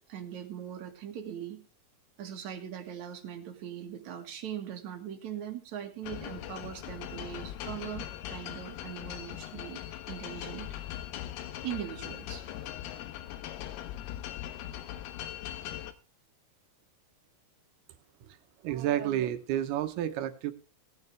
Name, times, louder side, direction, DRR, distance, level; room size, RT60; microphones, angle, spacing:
voice 1, 0.1-1.6 2.2-9.8 10.1-10.7 11.6-12.5 18.2-18.3, right 9 dB, 55° right, 4 dB, 2.6 m, -40 dB
sound 1, 6.0-15.9, left 12 dB, 80° left, 2.9 m, -40 dB
voice 2, 18.6-20.5, right 11 dB, 75° right, 9 dB, 2.8 m, -30 dB
18.5 x 9.5 x 3.3 m, 0.32 s
omnidirectional pair, 4.7 m